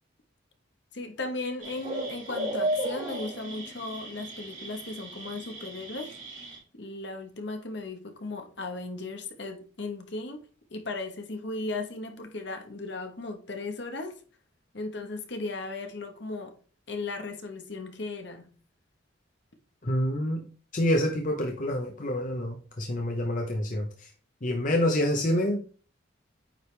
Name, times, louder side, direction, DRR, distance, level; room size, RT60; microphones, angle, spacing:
voice 1, 0.9-6.1 6.7-10.4 10.7-14.2 14.7-16.6 16.9-18.5, left 2 dB, 60° left, 1.2 m, -36 dB
sound 1, 1.6-6.6, right 1 dB, 35° right, 3.6 m, -35 dB
voice 2, 19.8-20.4 20.7-24.1 24.4-25.7, left 1 dB, 40° left, 0.9 m, -27 dB
9.1 x 5.1 x 3.3 m
head